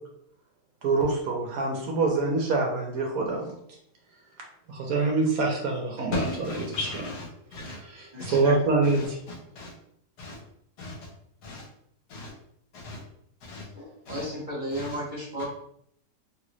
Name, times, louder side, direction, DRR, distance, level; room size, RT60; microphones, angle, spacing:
voice 1, 0.8-3.6 4.7-6.1 7.9-9.2, right 3 dB, 65° right, 1.0 m, -25 dB
voice 2, 6.1-7.8 8.2-8.4 8.8-9.7 10.2-10.4 10.8-11.1 11.4-11.7 12.1-12.3 12.7-13.0 13.4-13.7 14.1-14.2 14.7-15.0 15.4-15.5, left 2 dB, 75° left, 1.4 m, -36 dB
voice 3, 8.1-8.6 13.7-15.4, equal, 35° right, 1.1 m, -34 dB
3.0 x 2.5 x 3.0 m
omnidirectional pair, 1.8 m